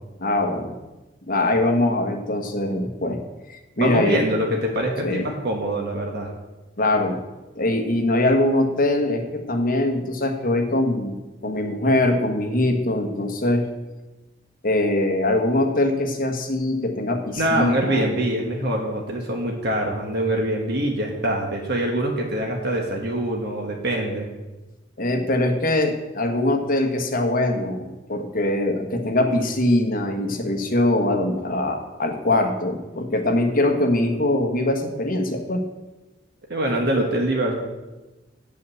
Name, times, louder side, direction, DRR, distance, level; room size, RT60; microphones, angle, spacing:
voice 1, 0.2-0.8 1.3-3.2 3.5-4.2 5.0-5.3 6.8-7.2 7.5-13.7 14.6-18.1 25.0-35.7, left 1 dB, 45° left, 3 dB, 1.3 m, -22 dB
voice 2, 3.8-6.3 17.4-24.3 36.5-37.6, right 1 dB, 60° right, 0 dB, 1.4 m, -24 dB
9.1 x 5.6 x 7.6 m, 1.1 s
head